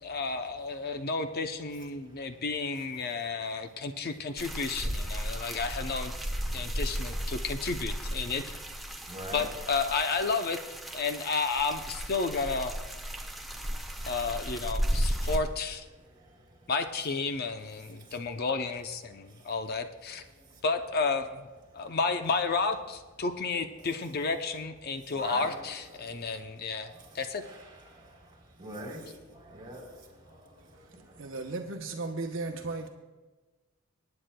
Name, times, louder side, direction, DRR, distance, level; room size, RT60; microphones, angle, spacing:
voice 1, 0.0-6.1 6.5-8.4 9.3-10.6 10.9-12.7 14.1-15.8 16.7-20.2 20.6-21.5 21.7-27.4, left 4 dB, 50° left, 0.6 m, -32 dB
sound 1, 4.4-15.4, equal, ahead, 0.9 m, -34 dB
voice 2, 9.1-9.5 13.6-13.8 16.2-16.3 20.4-20.5 25.1-25.5 26.0-26.4 26.9-27.1 27.4-27.6 27.9-28.2 28.6-30.5 30.8-31.3, right 1 dB, 25° right, 3.6 m, -44 dB
voice 3, 31.2-32.9, right 3 dB, 70° right, 0.9 m, -35 dB
24.0 x 9.7 x 2.2 m
head